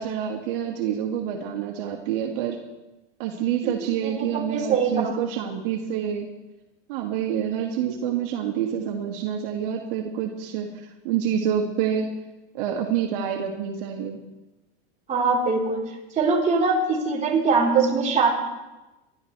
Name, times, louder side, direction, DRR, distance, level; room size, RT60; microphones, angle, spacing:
voice 1, 0.0-2.6 3.2-6.3 6.9-12.1 12.5-14.2, right 9 dB, 65° right, 1 dB, 2.0 m, -27 dB
voice 2, 4.0-5.2 15.1-18.3, right 4 dB, 25° right, -4 dB, 4.3 m, -23 dB
27.5 x 12.5 x 3.4 m, 1.0 s
supercardioid pair, 120°, 29 cm